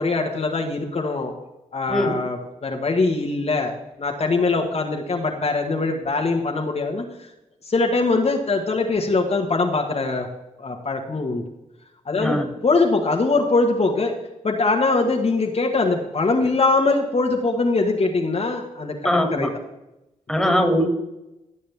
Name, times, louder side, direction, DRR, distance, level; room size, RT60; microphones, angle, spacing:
voice 1, 0.0-1.3 1.7-3.7 4.0-7.3 7.6-10.3 10.6-11.4 12.0-14.1 14.4-19.5, left 3 dB, 50° left, 1 dB, 1.6 m, -22 dB
voice 2, 19.0-19.5 20.3-20.9, equal, ahead, 3 dB, 2.5 m, -20 dB
16.5 x 6.5 x 3.5 m, 0.93 s
supercardioid pair, 50°, 14 cm